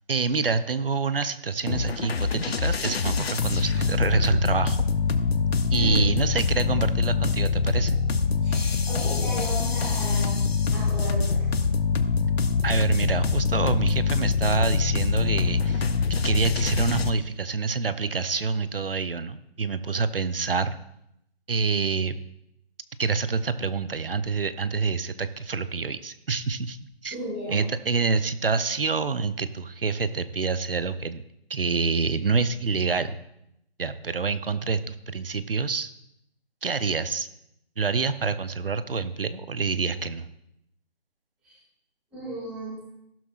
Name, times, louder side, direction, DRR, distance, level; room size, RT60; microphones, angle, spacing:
voice 1, 0.1-4.8 5.7-8.0 12.6-15.9 16.2-20.8 21.5-22.2 23.0-26.8 27.0-27.1 27.5-31.2 31.5-33.2 33.8-35.9 36.6-37.3 37.8-40.3, right 4 dB, 60° right, 13 dB, 0.7 m, -27 dB
sound 1, 1.7-17.1, left 4 dB, 70° left, 0.9 m, -24 dB
voice 2, 5.7-6.0 8.4-10.4 10.7-11.5 27.1-27.6 41.4-41.6 42.1-42.8, right 1 dB, 5° right, -10 dB, 2.1 m, -34 dB
15.5 x 12.0 x 2.4 m, 0.78 s
hypercardioid pair, 180°, 32 cm